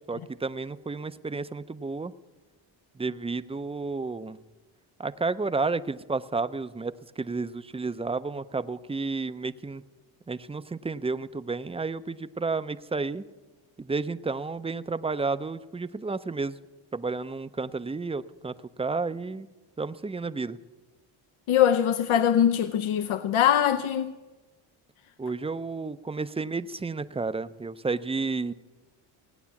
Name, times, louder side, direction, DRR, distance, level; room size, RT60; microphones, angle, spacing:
voice 1, 0.1-2.1 3.0-4.4 5.0-9.8 10.3-13.2 13.8-16.6 16.9-19.5 19.8-20.6 25.2-28.5, right 3 dB, 15° right, 0.4 m, -31 dB
voice 2, 21.5-24.1, left 10 dB, 80° left, 0.7 m, -22 dB
17.5 x 9.3 x 7.1 m
cardioid pair, 85°, 49 cm